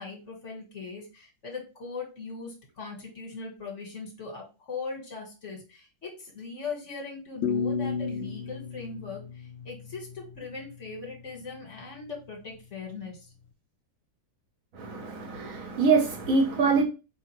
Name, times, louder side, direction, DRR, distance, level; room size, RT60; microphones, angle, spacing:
voice 1, 0.0-13.3, left 4 dB, 50° left, 1.5 m, -40 dB
sound 1, 7.4-10.4, left 6 dB, 70° left, 0.7 m, -32 dB
voice 2, 14.7-16.8, right 4 dB, 60° right, 1.2 m, -24 dB
4.8 x 3.0 x 2.9 m
omnidirectional pair, 1.7 m